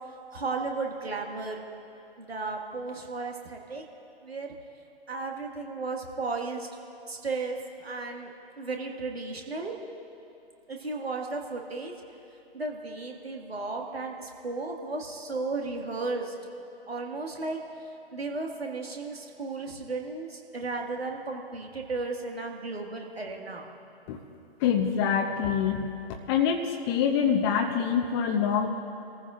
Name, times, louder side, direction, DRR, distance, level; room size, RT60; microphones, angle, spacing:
voice 1, 0.3-1.6 2.2-3.8 4.2-4.5 5.1-6.7 7.1-8.3 8.6-9.7 10.7-11.9 12.5-16.3 16.9-17.6 18.1-23.7, right 3 dB, 75° right, 1 dB, 2.0 m, -34 dB
voice 2, 24.6-25.9 26.3-28.7, left 7 dB, 25° left, 3 dB, 0.8 m, -25 dB
27.5 x 14.5 x 2.6 m, 2.8 s
figure-of-eight pair, 125°, 31 cm